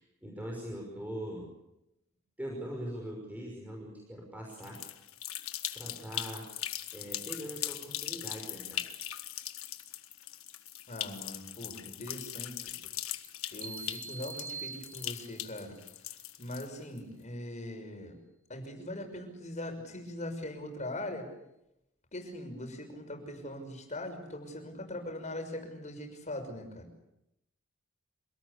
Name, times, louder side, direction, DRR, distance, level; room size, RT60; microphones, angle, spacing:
voice 1, 0.0-1.5 2.4-4.8 5.7-6.4 6.9-8.8, right 1 dB, 5° right, -1 dB, 5.8 m, -41 dB
sound 1, 4.5-17.0, left 12 dB, 75° left, 1.6 m, -40 dB
voice 2, 10.9-12.6 13.5-15.8 16.4-18.2 18.5-21.3 22.1-26.9, left 1 dB, 35° left, 5 dB, 6.2 m, -41 dB
sound 2, 13.6-15.6, right 5 dB, 40° right, 2.4 m, -43 dB
27.0 x 18.5 x 8.5 m, 0.86 s
head